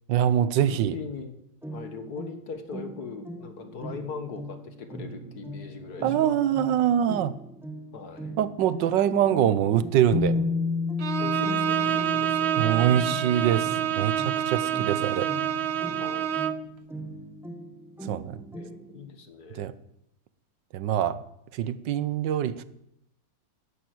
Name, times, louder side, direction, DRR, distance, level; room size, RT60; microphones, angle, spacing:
voice 1, 0.1-0.9 6.0-7.3 8.4-10.4 12.6-13.7 14.0-15.3 18.1-18.4 19.5-19.7 20.7-21.2 21.5-22.6, right 10 dB, 85° right, 15 dB, 1.5 m, -24 dB
voice 2, 0.6-1.3 1.7-6.4 7.9-8.4 11.2-13.0 16.0-16.3 18.5-19.7, left 5 dB, 60° left, 8 dB, 2.0 m, -40 dB
sound 1, 1.6-19.1, right 1 dB, ahead, 1.3 m, -41 dB
Bass guitar, 10.1-14.1 15.2-15.3, left 4 dB, 85° left, 2.0 m, -30 dB
Bowed string instrument, 11.0-16.7, right 10 dB, 55° right, 0.8 m, -27 dB
12.0 x 11.0 x 7.9 m, 0.79 s
omnidirectional pair, 1.9 m